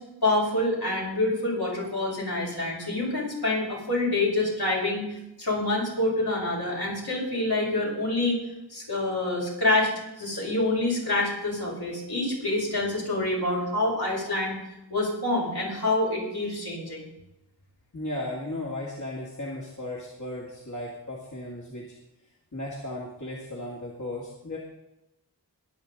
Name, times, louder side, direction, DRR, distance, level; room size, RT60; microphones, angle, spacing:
voice 1, 0.2-8.4 8.7-9.9 10.2-14.6 14.9-17.1, left 2 dB, 65° left, -3 dB, 5.4 m, -27 dB
voice 2, 17.9-21.9 22.5-24.6, left 1 dB, 45° left, -4 dB, 2.5 m, -35 dB
21.5 x 7.4 x 4.1 m, 0.91 s
wide cardioid pair, 55°, 41 cm